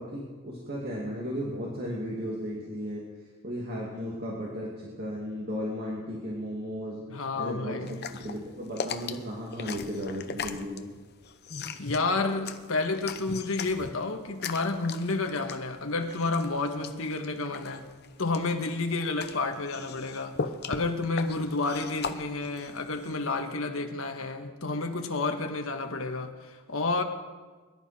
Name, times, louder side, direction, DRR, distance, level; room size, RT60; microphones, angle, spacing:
voice 1, 0.0-3.0 3.4-7.0 7.4-10.9, equal, 45° right, -4 dB, 2.5 m, -35 dB
voice 2, 7.1-8.0 11.8-17.9 18.2-20.4 20.6-27.0, left 3 dB, 70° left, 5 dB, 1.5 m, -30 dB
sound 1, 7.8-23.4, left 5 dB, 50° left, 0.8 m, -39 dB
23.0 x 11.5 x 4.3 m, 1.4 s
head